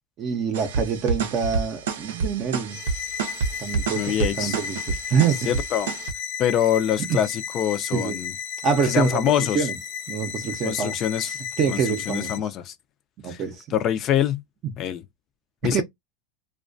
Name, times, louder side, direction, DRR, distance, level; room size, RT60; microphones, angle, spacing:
voice 1, 0.2-2.8 3.6-5.5 7.1-7.2 7.9-8.2 8.6-9.8 10.1-10.9 11.2-12.4 13.2-13.6 14.6-14.7 15.7-15.8, right 6 dB, 40° right, 0.6 m, -26 dB
sound 1, 0.5-6.1, right 5 dB, 85° right, 0.5 m, -29 dB
sound 2, 2.7-12.4, left 8 dB, 60° left, 0.7 m, -34 dB
voice 2, 3.9-4.6 5.5-5.9 6.4-8.3 8.8-9.7 10.6-11.3 11.7-11.8 12.1-12.7 13.2-13.4 13.7-14.4 14.8-15.0 15.6-15.8, left 10 dB, 40° left, 0.4 m, -24 dB
2.3 x 2.2 x 2.5 m
supercardioid pair, 120°, 0 cm